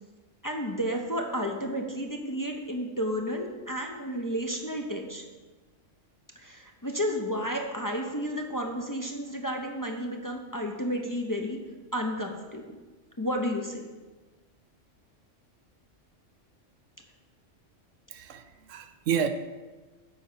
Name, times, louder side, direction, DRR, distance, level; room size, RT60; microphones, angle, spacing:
voice 1, 0.4-5.3 6.4-11.6 11.9-12.6 13.2-13.9, equal, 20° left, 1 dB, 0.7 m, -32 dB
voice 2, 18.1-19.3, right 8 dB, 85° right, 8 dB, 1.1 m, -30 dB
8.2 x 5.4 x 6.8 m, 1.3 s
omnidirectional pair, 1.3 m